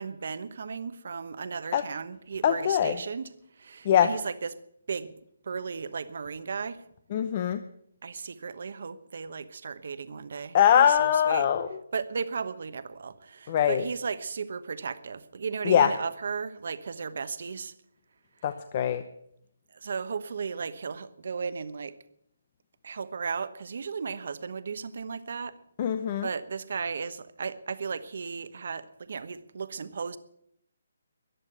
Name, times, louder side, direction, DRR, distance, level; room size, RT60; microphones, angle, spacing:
voice 1, 0.0-4.6 4.9-5.1 5.4-6.9 8.0-11.5 11.9-17.7 19.7-22.0 22.8-25.6 26.2-30.2, right 5 dB, 60° right, 1.1 m, -35 dB
voice 2, 2.4-3.0 3.8-4.1 7.1-7.6 10.5-11.7 13.5-13.9 15.6-15.9 18.4-19.1 25.8-26.3, left 9 dB, 35° left, 0.8 m, -22 dB
14.5 x 10.5 x 8.0 m
hypercardioid pair, 160°, 0 cm